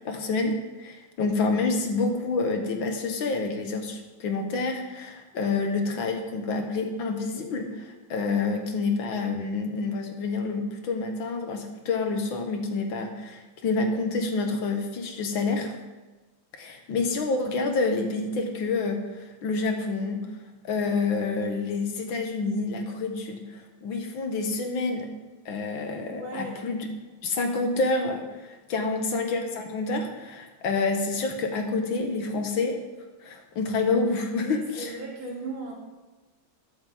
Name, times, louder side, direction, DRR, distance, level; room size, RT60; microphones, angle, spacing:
voice 1, 0.1-0.5 0.8-15.7 16.6-20.3 20.6-25.1 25.5-26.9 27.2-32.8 33.2-35.0, left 3 dB, 75° left, 4 dB, 2.0 m, -28 dB
voice 2, 26.2-26.6 28.8-28.9 34.4-35.7, right 3 dB, 70° right, -4 dB, 3.7 m, -36 dB
20.5 x 7.3 x 3.6 m, 1.2 s
omnidirectional pair, 2.2 m